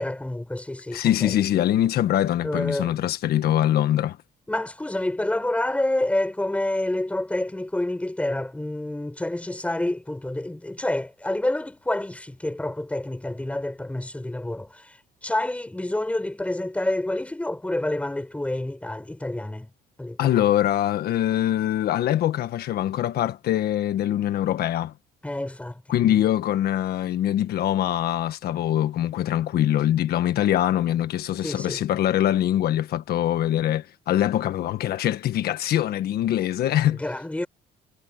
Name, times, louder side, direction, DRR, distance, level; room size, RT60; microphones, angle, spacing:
voice 1, 0.0-1.4 2.4-3.1 4.5-15.0 15.2-19.7 20.0-20.5 25.2-25.8 26.1-26.3 31.4-31.8 36.9-37.5, left 1 dB, 10° left, 5.7 m, -28 dB
voice 2, 0.9-4.2 20.2-24.9 25.9-37.0, left 12 dB, 65° left, 1.5 m, -23 dB
cardioid pair, 110°, 17 cm